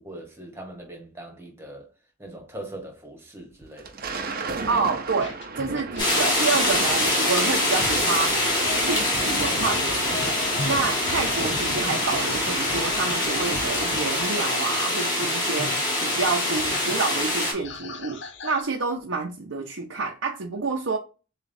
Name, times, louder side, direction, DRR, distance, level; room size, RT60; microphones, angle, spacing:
voice 1, 0.0-1.9 2.2-4.1, right 1 dB, 15° right, 1.2 m, -41 dB
Thunder, 3.6-14.4, right 3 dB, 45° right, 0.7 m, -35 dB
voice 2, 4.7-8.4 8.8-21.0, right 4 dB, 75° right, 0.8 m, -28 dB
sound 1, 5.2-18.6, left 4 dB, 60° left, 0.7 m, -38 dB
sound 2, 6.0-17.5, left 1 dB, 20° left, 1.7 m, -25 dB
7.2 x 2.4 x 2.7 m
head